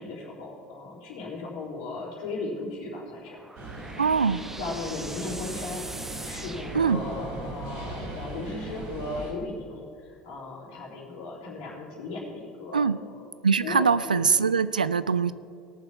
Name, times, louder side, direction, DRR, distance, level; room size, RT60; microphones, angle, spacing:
voice 1, 0.0-3.4 4.4-12.9 13.2-13.3 13.6-13.8 14.1-14.5, left 3 dB, 60° left, -7 dB, 3.9 m, -37 dB
sound 1, 3.0-7.5, right 1 dB, 10° right, 1.0 m, -42 dB
sound 2, 3.6-9.3, right 2 dB, 60° right, 3.2 m, -38 dB
voice 2, 4.0-4.4 6.7-7.0 12.7-13.0 13.4-15.3, right 5 dB, 85° right, 16 dB, 0.4 m, -23 dB
18.5 x 7.1 x 5.5 m, 2.4 s
figure-of-eight pair, 70°, 4 cm